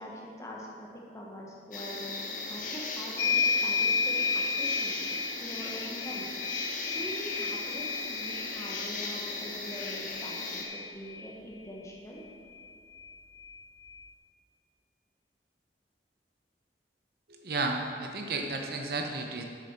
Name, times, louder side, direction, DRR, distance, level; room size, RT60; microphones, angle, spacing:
voice 1, 0.0-2.2 2.5-6.4 6.8-12.2, equal, 20° left, -3 dB, 1.3 m, -43 dB
sound 1, 1.7-10.7, left 3 dB, 45° left, 1.1 m, -37 dB
sound 2, 3.2-11.3 12.6-12.7 12.9-14.0, left 5 dB, 80° left, 0.6 m, -32 dB
voice 2, 17.3-19.4, right 3 dB, 55° right, 3 dB, 0.8 m, -33 dB
7.8 x 6.6 x 5.8 m, 2.4 s
head